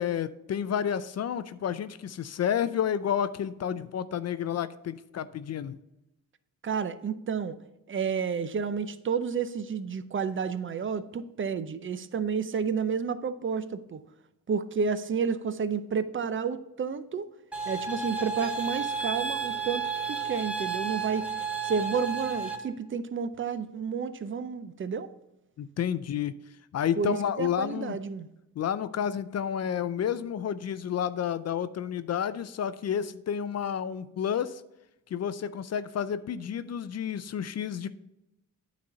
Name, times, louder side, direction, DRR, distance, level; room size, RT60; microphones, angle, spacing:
voice 1, 0.0-5.8 25.6-26.4 26.7-28.0 28.6-34.6 35.1-37.9, left 8 dB, 50° left, 14 dB, 0.4 m, -30 dB
voice 2, 6.6-7.6 7.9-14.0 14.5-17.3 17.7-21.2 21.6-25.1 27.0-28.3, right 6 dB, 35° right, 13 dB, 0.6 m, -31 dB
sound 1, 17.5-22.6, right 5 dB, 5° right, 1.3 m, -32 dB
9.4 x 4.2 x 5.6 m, 0.91 s
cardioid pair, 95°, 33 cm